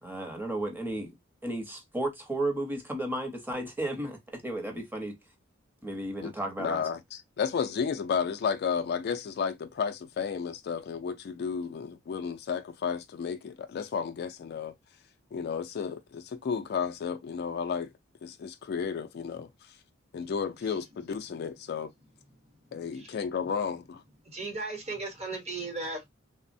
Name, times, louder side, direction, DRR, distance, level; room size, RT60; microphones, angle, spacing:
voice 1, 0.0-1.1 1.4-5.2 5.8-6.9, right 1 dB, 10° right, 0.7 m, -33 dB
voice 2, 6.6-14.7 15.3-17.9 18.2-19.5 20.1-21.9 22.7-24.0, left 6 dB, 55° left, 0.3 m, -32 dB
voice 3, 24.2-26.1, right 3 dB, 35° right, 0.9 m, -36 dB
3.3 x 2.0 x 2.5 m
head